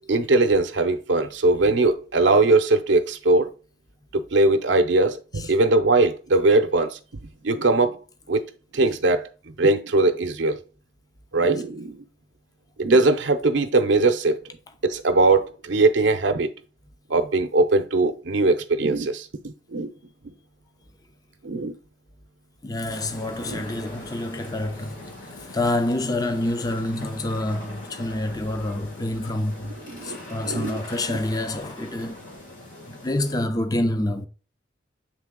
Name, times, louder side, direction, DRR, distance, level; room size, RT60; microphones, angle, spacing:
voice 1, 0.1-3.5 4.1-7.0 7.4-8.0 8.3-8.4 8.7-9.3 9.6-10.6 11.3-12.0 12.8-14.4 14.8-16.5 17.1-19.3 19.7-19.9 21.4-21.7 23.5-23.6 29.9-30.2 30.4-30.8, right 2 dB, 75° right, 0.6 m, -20 dB
voice 2, 22.6-32.2 32.9-34.3, left 1 dB, 20° left, 0.5 m, -27 dB
sound 1, 22.9-33.4, left 1 dB, 85° left, 3.1 m, -42 dB
8.0 x 3.3 x 3.7 m
head